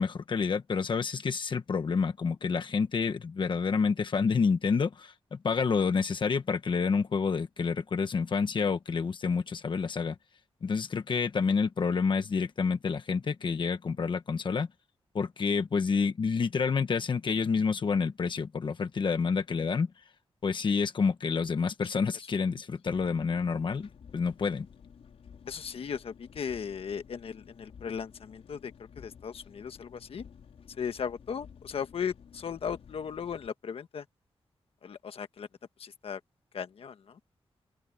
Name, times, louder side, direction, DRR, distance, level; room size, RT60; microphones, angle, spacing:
voice 1, 0.0-10.1 10.6-14.7 15.1-19.9 20.4-24.7, left 5 dB, 55° left, 1.3 m, -28 dB
Engine, 22.9-33.5, left 7 dB, 90° left, 4.8 m, -53 dB
voice 2, 25.5-30.2 30.8-34.1 34.8-35.5 35.8-36.2 36.5-37.2, left 7 dB, 75° left, 1.3 m, -37 dB
wide cardioid pair, 130°, 10 cm